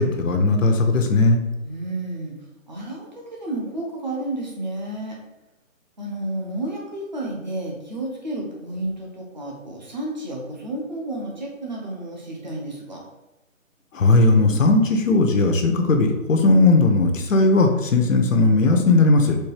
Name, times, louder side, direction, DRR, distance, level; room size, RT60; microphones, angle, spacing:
voice 1, 0.0-1.4 13.9-19.4, left 2 dB, 70° left, 3 dB, 0.7 m, -17 dB
voice 2, 1.6-2.4 2.7-5.2 6.0-13.0, right 1 dB, 35° right, -2 dB, 0.7 m, -31 dB
4.3 x 2.2 x 3.2 m, 1.1 s
hypercardioid pair, 170°, 40 cm